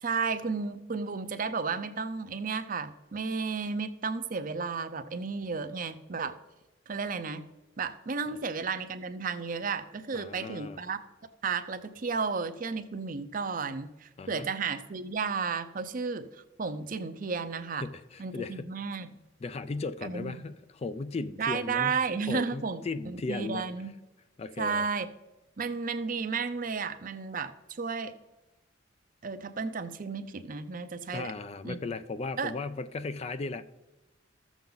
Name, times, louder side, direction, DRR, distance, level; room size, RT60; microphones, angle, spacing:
voice 1, 0.0-6.3 6.9-7.4 7.8-11.0 11.4-16.3 16.6-17.8 18.2-19.1 20.0-20.3 21.4-23.9 24.6-25.1 25.6-27.5 27.8-28.1 29.2-31.3 31.6-31.8 32.4-32.5, right 5 dB, 45° right, 11 dB, 0.5 m, -33 dB
voice 2, 10.1-10.8 14.2-14.5 17.8-18.7 19.4-22.0 22.3-23.7 24.4-24.9 31.1-33.6, left 3 dB, 30° left, 12 dB, 0.3 m, -36 dB
13.5 x 7.1 x 3.9 m, 1.0 s
head